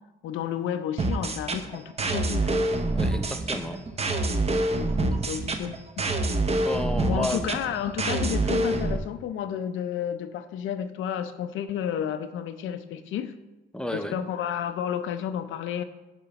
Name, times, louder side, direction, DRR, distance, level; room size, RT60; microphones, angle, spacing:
voice 1, 0.2-2.5 4.7-6.1 7.0-13.3 13.9-15.8, left 9 dB, 80° left, 9 dB, 0.5 m, -31 dB
sound 1, 1.0-9.0, right 2 dB, 30° right, 0.7 m, -26 dB
voice 2, 2.9-3.9 6.6-7.5 13.7-14.2, left 1 dB, 5° left, 7 dB, 0.6 m, -32 dB
7.0 x 3.9 x 5.7 m, 1.1 s
cardioid pair, 90°, 20 cm